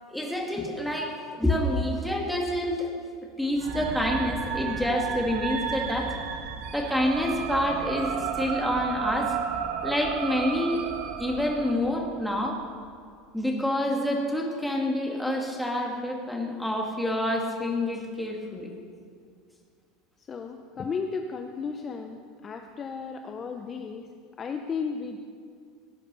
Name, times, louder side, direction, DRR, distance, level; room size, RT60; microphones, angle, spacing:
voice 1, 0.1-2.9 3.4-6.1 6.7-9.3 9.8-10.8 11.2-12.6 13.3-18.7, left 1 dB, ahead, 0 dB, 2.1 m, -27 dB
sound 1, 3.5-13.1, right 3 dB, 30° right, 1.2 m, -42 dB
sound 2, 3.6-11.7, right 7 dB, 65° right, 1.5 m, -33 dB
voice 2, 20.2-24.1 24.4-25.2, left 5 dB, 25° left, 5 dB, 0.8 m, -34 dB
17.5 x 9.3 x 6.8 m, 2.2 s
supercardioid pair, 135°, 0 cm